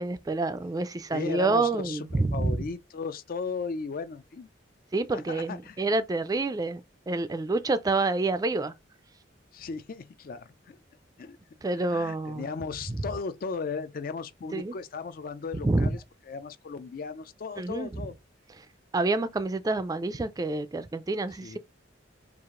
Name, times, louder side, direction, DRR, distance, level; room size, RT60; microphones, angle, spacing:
voice 1, 0.0-2.5 4.9-6.8 7.1-8.7 11.6-12.5 14.5-14.7 15.6-15.9 17.6-17.9 18.9-21.6, right 2 dB, 20° right, 0.3 m, -28 dB
voice 2, 1.1-4.5 5.1-5.8 9.5-10.8 11.2-11.4 11.8-16.0 16.3-18.2 21.4-21.6, left 5 dB, 50° left, 0.4 m, -36 dB
4.7 x 2.4 x 3.6 m
head